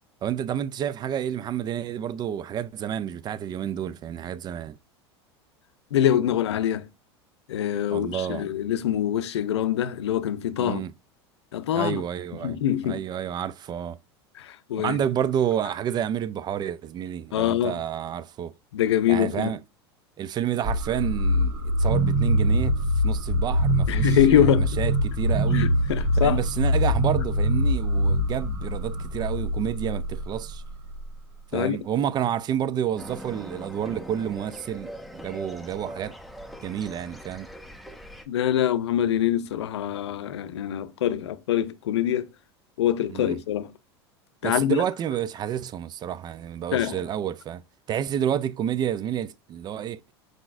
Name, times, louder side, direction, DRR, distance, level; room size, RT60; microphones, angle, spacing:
voice 1, 0.2-4.8 7.9-8.5 10.6-10.9 11.8-12.6 12.8-14.0 14.8-18.5 19.1-19.6 20.2-21.5 21.8-25.7 26.2-30.6 31.5-36.2 36.6-37.5 43.1-43.4 44.4-47.6 47.9-50.0, right 9 dB, 30° right, 0.3 m, -29 dB
voice 2, 5.9-6.9 7.5-10.8 11.5-12.0 12.4-13.0 14.4-15.0 17.3-17.8 18.7-19.5 23.9-24.8 25.5-26.4 31.5-31.8 38.3-42.3 42.8-43.7 44.4-44.8 46.7-47.0, left 11 dB, 80° left, 0.5 m, -24 dB
sound 1, 20.6-31.5, equal, 60° right, 1.3 m, -24 dB
sound 2, 33.0-38.2, equal, ahead, 0.6 m, -41 dB
5.0 x 3.8 x 2.5 m
hypercardioid pair, 90°, 14 cm